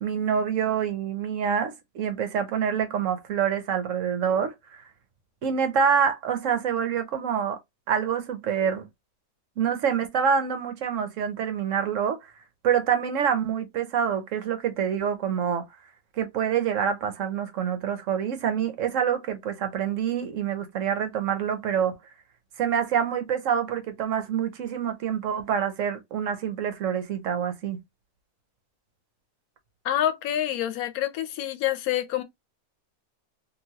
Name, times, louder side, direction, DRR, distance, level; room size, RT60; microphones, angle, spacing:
voice 1, 0.0-4.5 5.4-7.6 7.9-8.9 9.6-12.3 12.6-15.7 16.2-21.9 22.6-27.8, right 7 dB, 65° right, 1.0 m, -26 dB
voice 2, 29.8-32.2, left 12 dB, 80° left, 1.1 m, -27 dB
2.9 x 2.6 x 2.7 m
omnidirectional pair, 1.5 m